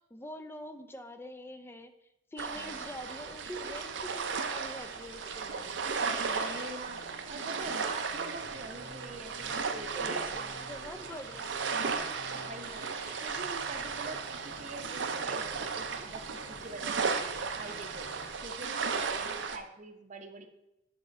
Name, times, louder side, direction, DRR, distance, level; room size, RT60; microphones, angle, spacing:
voice 1, 0.0-1.9 2.3-5.8 9.9-11.5, equal, 15° left, 8 dB, 0.5 m, -45 dB
sound 1, 2.4-19.6, right 5 dB, 75° right, 0.6 m, -35 dB
voice 2, 2.5-2.9 6.2-7.0 7.3-10.6 12.4-12.9 13.2-17.2 17.5-18.1 18.4-20.5, right 2 dB, 40° right, 6 dB, 0.8 m, -45 dB
sound 2, 4.8-18.3, left 1 dB, 65° left, 2.5 m, -52 dB
8.2 x 3.6 x 5.3 m, 0.86 s
head